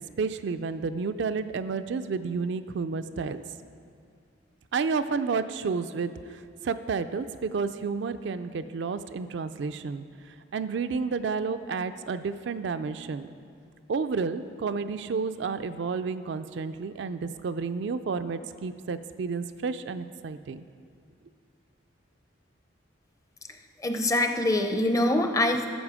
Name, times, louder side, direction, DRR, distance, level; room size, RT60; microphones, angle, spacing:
voice 1, 0.2-3.4 4.7-10.0 10.5-13.3 13.9-20.6, right 5 dB, 65° right, 10 dB, 0.4 m, -31 dB
voice 2, 23.8-25.7, left 1 dB, 15° left, 6 dB, 0.5 m, -24 dB
12.5 x 7.3 x 4.9 m, 2.3 s
head